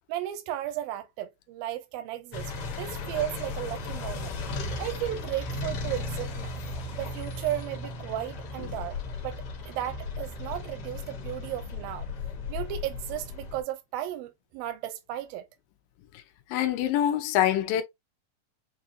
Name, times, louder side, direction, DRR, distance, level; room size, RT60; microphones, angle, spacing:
voice 1, 0.1-2.5 2.8-4.4 4.8-6.5 6.9-9.0 9.2-9.4 9.6-12.1 12.5-15.5, right 13 dB, 85° right, 2.4 m, -34 dB
sound 1, 2.3-13.6, left 3 dB, 60° left, 1.6 m, -36 dB
voice 2, 16.5-17.8, left 11 dB, 80° left, 2.3 m, -25 dB
6.5 x 2.6 x 2.7 m
omnidirectional pair, 4.0 m